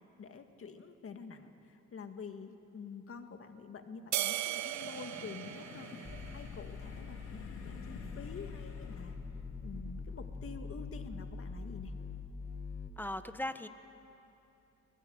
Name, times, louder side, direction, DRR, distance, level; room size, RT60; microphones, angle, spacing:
voice 1, 0.2-5.9 6.3-9.2 9.6-11.9, left 5 dB, 45° left, 7 dB, 2.0 m, -48 dB
sound 1, 4.1-9.1, left 4 dB, 85° left, 3.3 m, -51 dB
sound 2, 4.1-6.7, right 14 dB, 70° right, 0.7 m, -37 dB
sound 3, 6.0-12.9, left 4 dB, 30° left, 1.6 m, -43 dB
voice 2, 13.0-13.7, left 1 dB, 5° left, 10 dB, 1.2 m, -38 dB
25.0 x 19.0 x 9.6 m, 2.8 s
cardioid pair, 90°, 30 cm